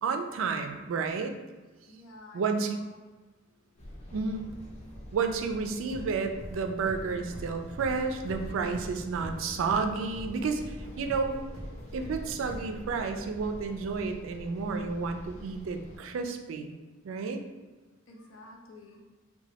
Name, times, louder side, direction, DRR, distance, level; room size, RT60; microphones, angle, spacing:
voice 1, 0.0-1.3 2.3-2.8 4.1-4.5 5.1-11.4 11.9-16.8 17.0-17.4, right 4 dB, 75° right, 6 dB, 0.3 m, -31 dB
voice 2, 1.9-2.9 3.3-4.0 18.1-19.0, left 2 dB, 85° left, 0 dB, 0.5 m, -52 dB
sound 1, 3.8-16.0, equal, 35° left, 0.6 m, -46 dB
sound 2, 5.9-13.5, equal, 65° left, 0.9 m, -45 dB
3.0 x 2.2 x 2.8 m, 1.3 s
head